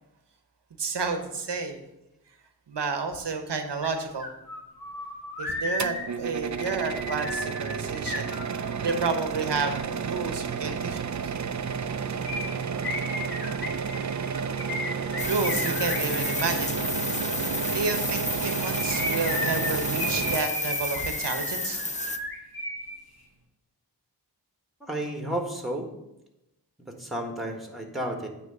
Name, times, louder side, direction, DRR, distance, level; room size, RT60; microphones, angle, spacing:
voice 1, 0.8-1.8 2.7-4.3 5.4-11.3 15.2-22.1, right 4 dB, 85° right, 6 dB, 1.0 m, -31 dB
sound 1, 3.8-3.9 4.2-9.0 12.2-16.5 18.3-22.9 23.2-23.3, left 2 dB, 60° left, 1.8 m, -34 dB
sound 2, 5.8-20.4, right 6 dB, 45° right, 0.5 m, -31 dB
sound 3, 15.2-22.2, left 3 dB, 20° left, 0.5 m, -32 dB
voice 2, 24.8-25.9 26.8-28.3, right 1 dB, ahead, 2 dB, 1.5 m, -32 dB
9.1 x 3.2 x 6.5 m, 0.91 s
cardioid pair, 40°, 41 cm